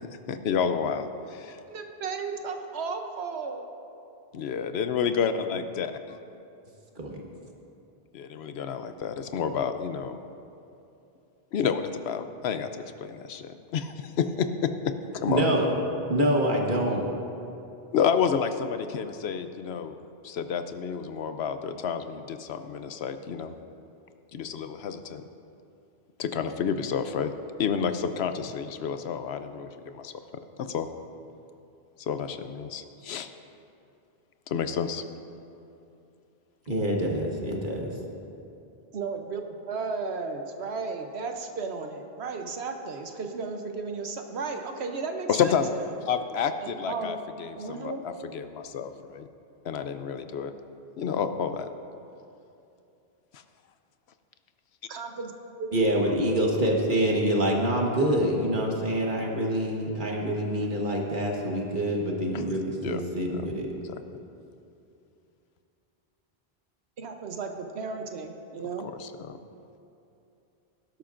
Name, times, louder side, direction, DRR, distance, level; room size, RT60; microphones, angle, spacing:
voice 1, 0.3-1.6 4.3-6.2 8.1-10.2 11.5-15.4 17.9-20.0 20.2-23.5 24.3-25.2 26.2-27.3 27.6-30.1 30.6-30.9 32.0-33.3 34.5-35.0 45.3-45.7 46.1-49.3 49.6-50.5 51.0-51.7 53.3-53.4 60.6-60.9 62.3-62.5 62.8-63.0 63.3-63.5 63.9-64.0 69.0-69.4, left 7 dB, 80° left, 9 dB, 0.9 m, -30 dB
voice 2, 1.7-3.7 38.9-45.8 46.6-47.2 47.5-48.0 54.9-55.3 55.6-55.7 67.0-68.9, right 4 dB, 85° right, 5 dB, 1.1 m, -34 dB
voice 3, 15.3-15.7 16.1-17.0 36.7-37.9 55.7-63.7, right 1 dB, 50° right, -1 dB, 1.6 m, -26 dB
18.5 x 11.5 x 2.6 m, 2.7 s
omnidirectional pair, 1.1 m